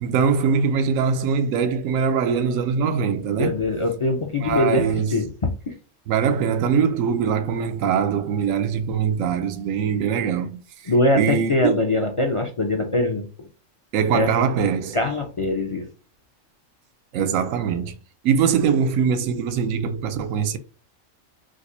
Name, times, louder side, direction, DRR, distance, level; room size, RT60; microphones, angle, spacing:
voice 1, 0.0-3.6 4.4-5.2 6.1-11.8 13.9-15.0 17.1-18.0 18.2-20.6, right 6 dB, 90° right, 1.0 m, -22 dB
voice 2, 3.4-4.9 5.1-5.3 5.7-5.8 10.9-13.3 14.1-14.3 14.9-15.9, left 2 dB, 50° left, 0.3 m, -22 dB
4.9 x 2.0 x 2.6 m
omnidirectional pair, 1.3 m